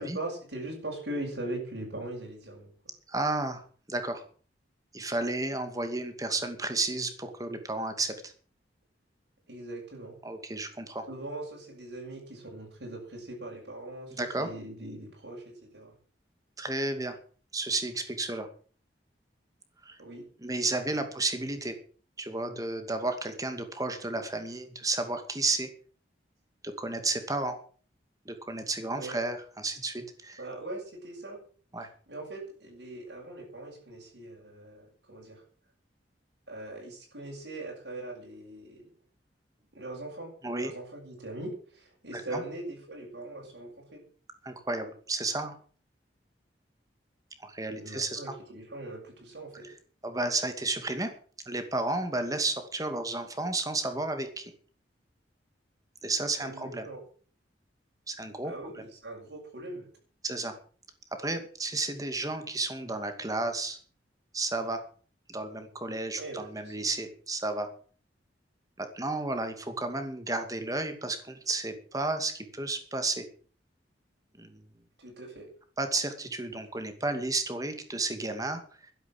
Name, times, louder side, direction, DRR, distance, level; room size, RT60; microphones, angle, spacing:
voice 1, 0.0-2.7 9.5-10.2 11.1-15.9 20.0-20.3 20.8-20.9 28.9-29.2 30.4-31.4 32.1-35.4 36.5-38.9 39.7-44.0 47.7-49.7 56.4-57.0 58.4-59.9 66.2-66.9 75.0-75.5, right 2 dB, 70° right, -2 dB, 7.0 m, -41 dB
voice 2, 3.1-3.6 3.9-4.2 4.9-8.3 10.2-11.1 14.2-14.5 16.6-17.2 17.5-18.5 19.8-20.0 20.4-21.7 22.2-25.7 26.6-27.6 28.3-30.4 31.7-31.9 40.4-40.7 42.1-42.4 44.4-45.5 47.4-48.3 49.6-49.7 50.0-51.1 51.5-54.5 56.0-56.8 58.1-58.5 60.2-60.5 61.2-63.8 64.3-64.8 65.3-67.7 68.8-73.3 74.4-74.6 75.8-78.9, right 2 dB, 20° right, 8 dB, 2.4 m, -32 dB
12.5 x 11.0 x 7.7 m, 0.43 s
head